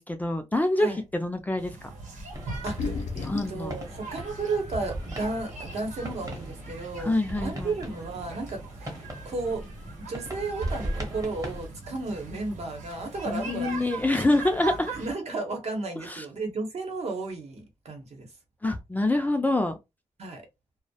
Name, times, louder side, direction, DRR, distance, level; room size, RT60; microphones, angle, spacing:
voice 1, 0.0-1.7 3.2-3.7 7.0-7.7 13.3-14.9 16.0-16.2 18.6-19.8, left 2 dB, 15° left, 0.3 m, -26 dB
sound 1, 1.6-15.1, right 3 dB, 90° right, 0.9 m, -41 dB
sound 2, 2.2-2.3 2.6-3.6 4.7-4.8 5.4-5.5 5.6-6.1, left 4 dB, 80° left, 0.5 m, -33 dB
sound 3, 2.3-11.7, right 1 dB, 25° right, 0.8 m, -38 dB
voice 2, 2.6-9.6 10.0-13.7 14.1-14.2 14.9-18.3 20.2-20.5, right 3 dB, 60° right, 0.8 m, -33 dB
2.2 x 2.0 x 2.7 m
wide cardioid pair, 125°, 12 cm